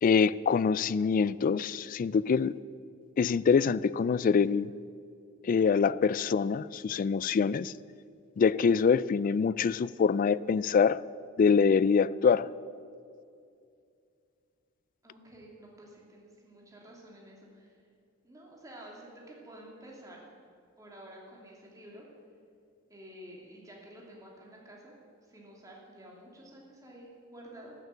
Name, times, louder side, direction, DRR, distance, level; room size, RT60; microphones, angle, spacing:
voice 1, 0.0-2.6 3.2-4.7 5.4-7.7 8.4-11.0 11.4-12.5, left 6 dB, 45° left, 19 dB, 0.3 m, -25 dB
voice 2, 15.0-17.7 18.2-20.2 20.8-22.0 22.9-25.0 25.3-27.7, right 1 dB, 15° right, -2 dB, 2.7 m, -50 dB
13.0 x 8.2 x 8.3 m, 2.4 s
head